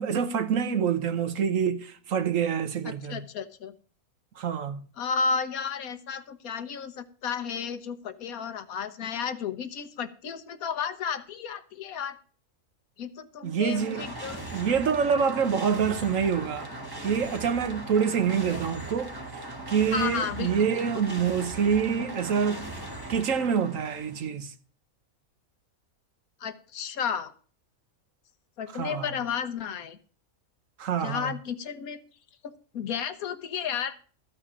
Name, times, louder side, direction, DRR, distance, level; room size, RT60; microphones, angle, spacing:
voice 1, 0.0-3.2 4.4-4.8 13.4-14.1 14.5-16.7 17.0-19.1 19.7-22.7 23.1-24.5 28.7-29.1 30.8-31.3, right 7 dB, 65° right, 1.2 m, -26 dB
voice 2, 2.8-3.7 5.0-12.2 13.0-14.4 18.5-18.6 19.9-20.8 26.4-27.3 28.6-30.0 31.0-32.0 32.4-34.0, left 6 dB, 75° left, 1.4 m, -33 dB
sound 1, 13.4-24.3, right 2 dB, 15° right, 1.2 m, -39 dB
14.0 x 5.0 x 8.5 m
omnidirectional pair, 1.6 m